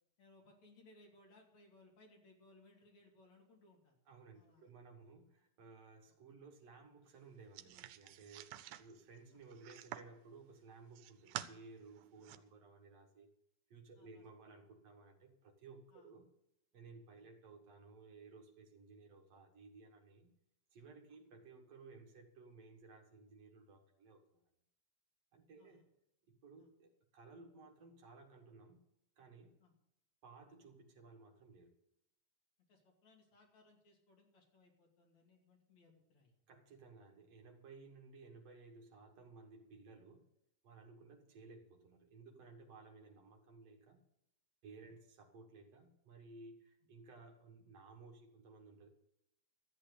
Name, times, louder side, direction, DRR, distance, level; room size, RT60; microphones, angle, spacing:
voice 1, 0.2-4.0 4.3-4.7 14.0-14.2 15.9-16.1 17.2-17.3 25.6-25.8 26.6-26.7 29.6-29.7 32.7-36.3 44.8-44.9, left 2 dB, 50° left, 0 dB, 3.5 m, -66 dB
voice 2, 4.1-13.3 13.7-16.3 16.7-20.3 20.7-24.4 25.3-26.0 26.2-29.6 30.2-31.8 36.5-40.3 40.6-44.1 44.6-48.9, right 4 dB, 55° right, 2 dB, 1.9 m, -58 dB
sound 1, 7.6-10.2 10.7-11.5 12.0-12.4, right 13 dB, 80° right, 2.3 m, -49 dB
13.5 x 8.6 x 6.7 m, 0.82 s
omnidirectional pair, 4.5 m